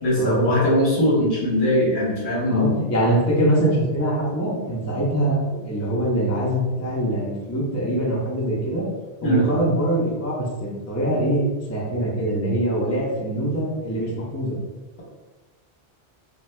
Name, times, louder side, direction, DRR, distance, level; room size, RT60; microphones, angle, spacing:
voice 1, 0.0-2.8 9.2-9.5, left 1 dB, 50° left, -6 dB, 1.0 m, -20 dB
voice 2, 2.5-8.9 9.2-14.6, right 1 dB, 20° left, -5 dB, 0.5 m, -23 dB
2.7 x 2.2 x 3.2 m, 1.2 s
omnidirectional pair, 1.1 m